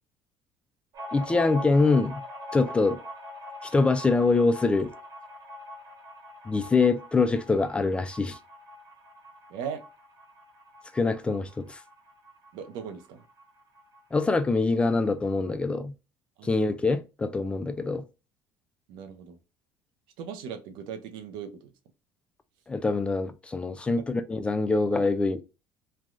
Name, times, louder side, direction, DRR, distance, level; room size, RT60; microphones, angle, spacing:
sound 1, 0.9-14.1 14.3-14.4 14.7-15.5, left 1 dB, 55° right, 1.2 m, -43 dB
voice 1, 1.1-2.2 2.5-3.0 3.6-4.9 6.5-8.4 10.9-11.8 14.1-15.9 16.4-18.0 22.7-25.4, left 3 dB, 15° left, 0.3 m, -24 dB
voice 2, 9.5-9.8 12.5-13.2 16.4-16.7 18.9-19.4 20.2-21.7 23.9-24.0, right 7 dB, 80° right, 0.7 m, -38 dB
3.2 x 2.2 x 2.5 m
cardioid pair, 130°, 8 cm